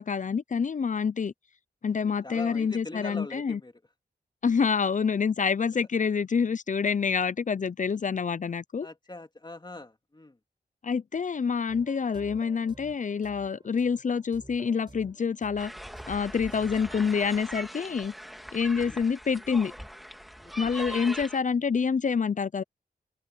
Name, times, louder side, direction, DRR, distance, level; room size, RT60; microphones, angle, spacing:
voice 1, 0.0-1.3 1.8-3.6 4.4-8.9 10.8-15.7 16.1-18.1 18.5-19.7 20.6-22.6, left 6 dB, 45° left, 0.5 m, -27 dB
voice 2, 2.0-3.7 8.8-10.4 18.8-19.0 20.4-20.7, left 2 dB, 25° left, 2.6 m, -42 dB
sound 1, 11.7-16.7, right 2 dB, 25° right, 4.6 m, -52 dB
sound 2, 15.6-21.4, equal, ahead, 2.1 m, -41 dB
cardioid pair, 60°, 18 cm